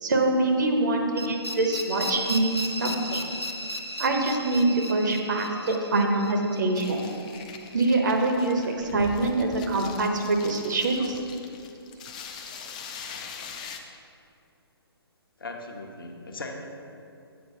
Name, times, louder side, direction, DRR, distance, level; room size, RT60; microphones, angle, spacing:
voice 1, 0.0-3.2 4.0-7.0 7.7-11.2, right 2 dB, 45° right, 3 dB, 0.9 m, -24 dB
sound 1, 1.2-8.0, equal, 85° left, 0.8 m, -36 dB
sound 2, 6.8-13.8, left 6 dB, 20° left, 0.3 m, -42 dB
voice 2, 15.4-16.7, left 2 dB, 60° left, 2 dB, 0.9 m, -38 dB
8.1 x 4.6 x 5.2 m, 2.6 s
figure-of-eight pair, 135°, 13 cm